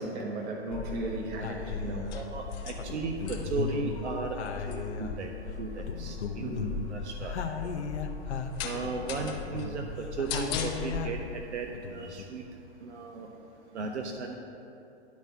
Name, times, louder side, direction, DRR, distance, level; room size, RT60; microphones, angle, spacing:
voice 1, 0.0-2.1 6.4-6.8 9.7-9.9, right 2 dB, 30° right, 0 dB, 1.1 m, -35 dB
sound 1, 0.7-11.2, left 5 dB, 15° left, 0.3 m, -38 dB
sound 2, 0.8-1.0 1.4-2.2 2.8-5.4 5.8-11.3 11.7-12.2, left 6 dB, 75° left, 0.7 m, -37 dB
voice 2, 2.1-4.4 4.7-5.3 5.6-6.6 6.9-7.8 8.6-12.4 12.8-13.3 13.7-14.4, right 4 dB, 80° right, 3 dB, 0.8 m, -36 dB
10.5 x 4.1 x 5.5 m, 2.8 s
hypercardioid pair, 115°, 34 cm